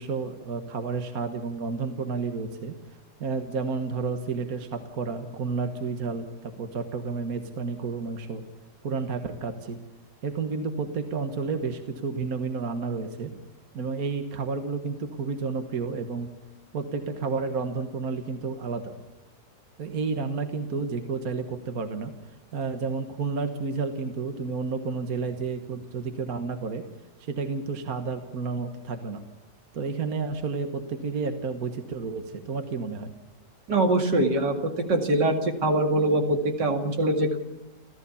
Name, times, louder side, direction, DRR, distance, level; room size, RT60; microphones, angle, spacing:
voice 1, 0.0-2.7 3.2-8.5 8.8-9.8 10.2-13.4 13.7-16.3 16.7-19.0 19.8-22.1 22.5-26.8 27.2-29.2 29.7-33.1, right 4 dB, 55° right, 7 dB, 1.8 m, -31 dB
voice 2, 33.7-34.5 34.9-37.4, right 1 dB, 75° right, 4 dB, 2.9 m, -23 dB
29.0 x 14.0 x 7.1 m, 1.0 s
omnidirectional pair, 1.9 m